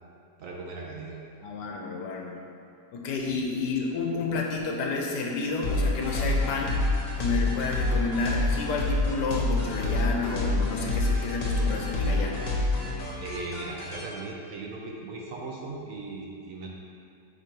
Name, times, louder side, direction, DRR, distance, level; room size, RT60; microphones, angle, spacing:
voice 1, 0.4-1.2 3.3-3.4 13.2-16.7, right 3 dB, 65° right, -1 dB, 0.9 m, -38 dB
voice 2, 1.4-2.4 2.9-6.8 7.2-12.3, left 3 dB, 80° left, 0 dB, 1.4 m, -30 dB
sound 1, 5.6-14.0, left 2 dB, 60° left, 1.4 m, -27 dB
5.1 x 4.6 x 4.5 m, 2.5 s
omnidirectional pair, 1.8 m